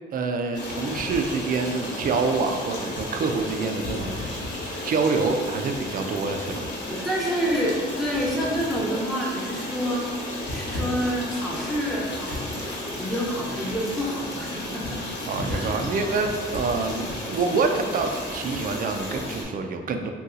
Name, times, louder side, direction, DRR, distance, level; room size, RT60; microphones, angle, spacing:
voice 1, 0.1-4.6 4.8-6.7 10.8-10.9 15.3-20.1, right 4 dB, 45° right, 5 dB, 0.4 m, -27 dB
Stream, 0.5-19.4, left 1 dB, 65° left, 0.9 m, -33 dB
voice 2, 6.9-10.1 10.4-15.0 15.5-15.8, equal, ahead, -5 dB, 0.8 m, -28 dB
2.7 x 2.3 x 3.7 m, 1.5 s
cardioid pair, 90°, 20 cm